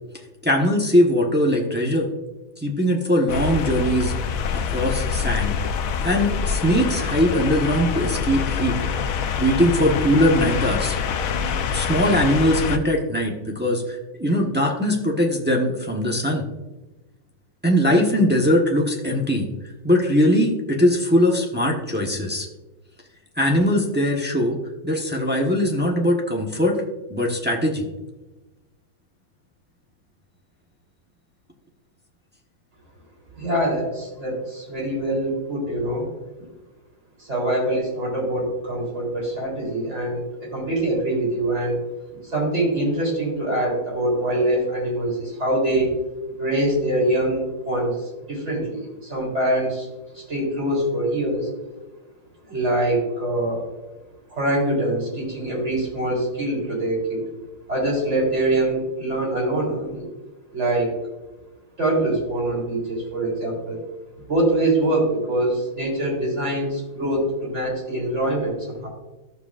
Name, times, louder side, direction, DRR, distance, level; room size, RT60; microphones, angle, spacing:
voice 1, 0.4-2.1 2.6-4.1 4.5-5.6 6.0-8.8 9.4-11.0 11.7-16.4 17.6-19.5 19.8-22.5 23.4-24.6 24.8-26.8 27.1-27.8, equal, 10° right, -1 dB, 0.5 m, -21 dB
sound 1, 3.3-12.8, left 6 dB, 80° left, 0.7 m, -25 dB
voice 2, 33.4-36.0 37.2-41.8 42.1-45.9 46.4-49.9 50.1-51.5 52.5-53.6 54.3-57.2 57.7-60.0 60.5-60.9 61.8-63.8 64.3-68.9, right 1 dB, 35° right, -3 dB, 3.8 m, -24 dB
14.5 x 7.0 x 2.5 m, 1.1 s
omnidirectional pair, 2.2 m